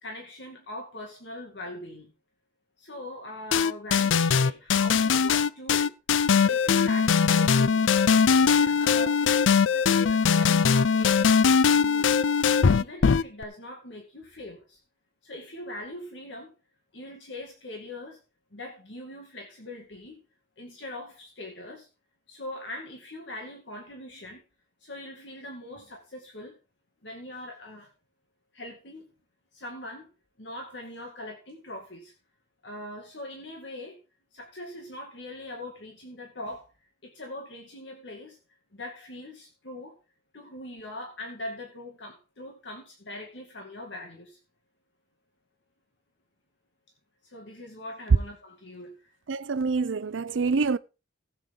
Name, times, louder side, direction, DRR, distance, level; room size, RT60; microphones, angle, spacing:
voice 1, 0.0-2.1 2.8-5.9 6.3-7.9 8.3-12.2 12.7-14.8 15.2-16.5 16.9-18.2 18.5-20.2 20.6-21.9 22.3-24.4 24.8-26.6 27.0-27.9 28.5-29.0 29.5-30.1 30.4-32.1 32.6-34.0 34.3-36.7 37.0-38.4 38.7-40.0 40.3-44.4 47.2-49.1, left 1 dB, 70° left, 2.3 m, -41 dB
sound 1, 3.5-13.4, left 6 dB, 90° left, 0.5 m, -21 dB
voice 2, 49.3-50.8, right 4 dB, 85° right, 0.5 m, -26 dB
16.0 x 8.4 x 3.8 m
head